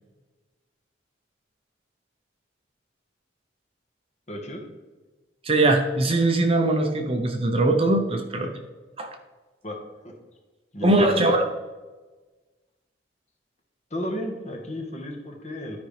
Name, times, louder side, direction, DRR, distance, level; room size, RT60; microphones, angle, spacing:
voice 1, 4.3-4.6 8.3-8.5 9.6-9.8 10.0-10.1 10.7-11.4 13.9-15.8, equal, 35° left, 2 dB, 1.4 m, -33 dB
voice 2, 5.4-8.5 9.0-9.2 10.8-11.4, right 2 dB, 30° right, 4 dB, 0.7 m, -21 dB
12.0 x 5.2 x 3.3 m, 1.3 s
head